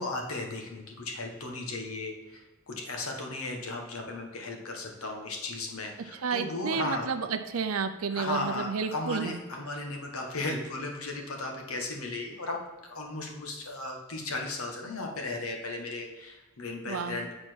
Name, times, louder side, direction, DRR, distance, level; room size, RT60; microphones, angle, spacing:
voice 1, 0.0-7.1 8.1-12.6 12.9-17.3, left 2 dB, 75° left, 2 dB, 1.4 m, -36 dB
voice 2, 6.2-9.4 16.9-17.2, right 5 dB, 75° right, 8 dB, 0.5 m, -31 dB
8.9 x 4.3 x 4.5 m, 1.2 s
head